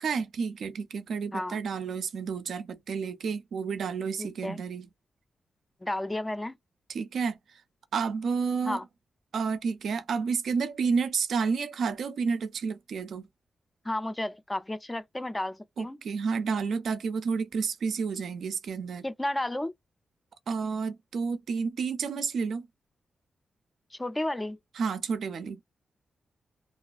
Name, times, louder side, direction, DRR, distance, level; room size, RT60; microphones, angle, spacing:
voice 1, 0.0-4.9 6.9-7.4 7.9-8.8 9.3-13.3 15.8-19.1 20.5-22.7 24.8-25.6, right 5 dB, 80° right, 0.4 m, -30 dB
voice 2, 4.2-4.6 5.8-6.5 8.7-8.8 13.8-16.0 19.0-19.7 23.9-24.6, left 1 dB, 15° left, 0.3 m, -32 dB
2.3 x 2.3 x 2.4 m
wide cardioid pair, 110°, 0 cm